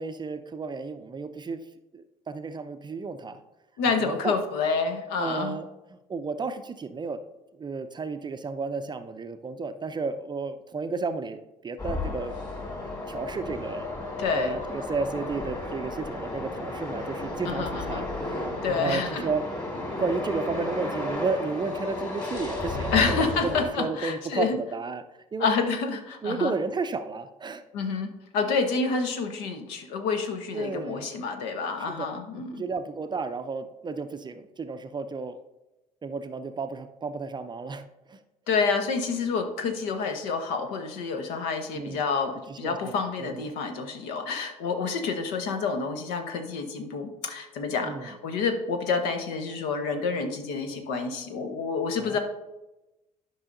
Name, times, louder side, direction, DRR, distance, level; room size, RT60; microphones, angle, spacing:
voice 1, 0.0-1.6 1.9-3.4 4.0-4.4 5.2-5.7 6.1-7.2 7.6-12.3 13.1-13.9 14.3-19.5 20.0-25.0 25.3-25.5 26.2-27.6 30.5-31.0 31.9-32.1 32.5-35.4 36.0-38.2 41.7-42.0 42.5-43.4 47.8-48.2 52.0-52.2, right 4 dB, 25° right, 9 dB, 0.5 m, -32 dB
voice 2, 3.8-5.6 14.2-14.6 17.5-18.1 18.6-19.3 22.9-24.6 25.4-26.5 27.7-32.6 38.5-52.2, left 5 dB, 65° left, 6 dB, 1.0 m, -28 dB
sound 1, 11.8-23.7, left 2 dB, 20° left, 2.4 m, -33 dB
12.0 x 5.5 x 2.7 m, 1.0 s
figure-of-eight pair, 55°, 18 cm